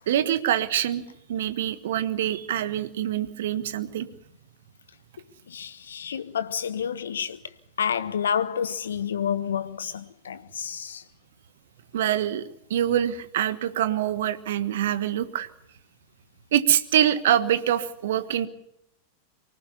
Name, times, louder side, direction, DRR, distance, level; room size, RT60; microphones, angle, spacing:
voice 1, 0.1-1.0 1.3-4.1 11.9-12.4 12.7-15.5 16.5-18.5, right 11 dB, 60° right, 1.4 m, -25 dB
voice 2, 5.5-11.0, left 8 dB, 65° left, 0.8 m, -29 dB
24.0 x 19.0 x 7.0 m
figure-of-eight pair, 90°, 0 cm